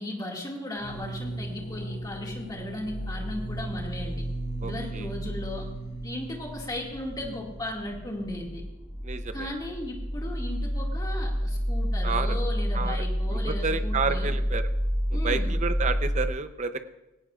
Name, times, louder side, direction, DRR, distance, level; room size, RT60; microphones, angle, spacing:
voice 1, 0.0-4.2 4.6-5.7 6.0-8.6 9.3-14.3 15.1-15.5, left 1 dB, 20° left, -1 dB, 2.1 m, -36 dB
sound 1, 0.8-8.5, right 2 dB, 55° left, 1.7 m, -39 dB
sound 2, 2.9-16.3, equal, ahead, 2.5 m, -30 dB
voice 2, 4.6-5.1 9.0-9.5 12.0-12.4 12.7-13.0 13.3-14.7 15.1-16.8, right 4 dB, 35° right, 10 dB, 0.7 m, -30 dB
17.5 x 17.0 x 2.4 m, 0.98 s
head